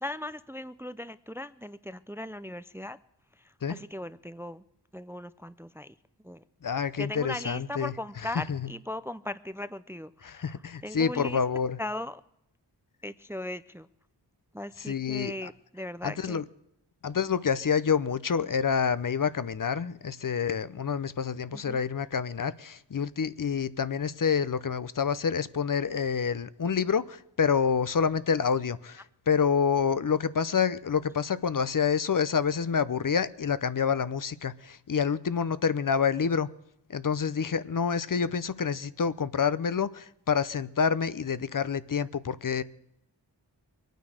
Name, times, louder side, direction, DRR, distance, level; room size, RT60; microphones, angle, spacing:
voice 1, 0.0-3.0 3.3-4.6 4.9-5.9 6.2-6.4 7.0-11.4 11.8-12.2 13.0-13.9 14.5-16.4 21.5-21.8, left 1 dB, 5° right, 0.5 m, -38 dB
voice 2, 6.6-7.9 8.5-8.6 10.2-11.8 14.9-15.5 16.0-16.4 17.0-36.5 36.9-42.6, left 6 dB, 50° left, 0.7 m, -28 dB
22.5 x 9.3 x 6.4 m
wide cardioid pair, 60°, 42 cm